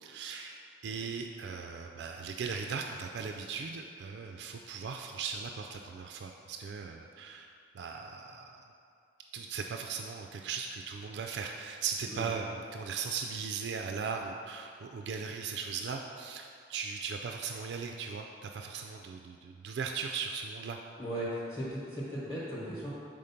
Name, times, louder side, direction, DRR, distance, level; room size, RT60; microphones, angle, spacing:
voice 1, 0.0-7.5 7.7-8.7 9.3-20.8, right 5 dB, 70° right, 3 dB, 0.3 m, -38 dB
voice 2, 21.0-22.9, equal, 15° left, -8 dB, 0.9 m, -37 dB
5.1 x 3.7 x 5.7 m, 2.4 s
head